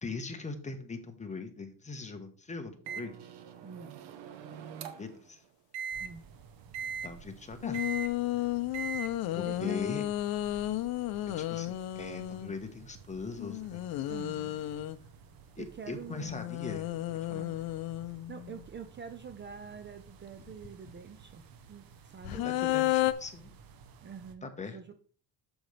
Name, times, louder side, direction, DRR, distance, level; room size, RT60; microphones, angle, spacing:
voice 1, 0.0-3.1 5.0-5.4 7.0-7.9 9.3-10.0 11.4-13.9 15.6-16.9 17.3-17.5 22.3-23.6 24.4-24.9, left 4 dB, 15° left, 5 dB, 1.2 m, -40 dB
Microwave oven, 2.9-5.2 5.7-6.1 6.7-7.1 7.7-8.1 8.7-9.1, right 7 dB, 85° right, 1.0 m, -39 dB
voice 2, 3.6-4.0 6.0-6.2 8.4-8.6 9.0-9.8 14.1-14.6 15.6-16.3 17.3-17.6 18.3-21.4 21.7-22.5 24.0-24.9, right 6 dB, 30° right, 8 dB, 0.7 m, -46 dB
sound 1, 5.9-24.3, right 6 dB, 60° right, 1.1 m, -54 dB
sound 2, 7.6-12.5 13.4-15.0 16.1-18.6 20.3-20.9 22.2-23.1, left 14 dB, 60° left, 0.6 m, -33 dB
8.0 x 7.0 x 3.3 m, 0.43 s
cardioid pair, 125°, 40 cm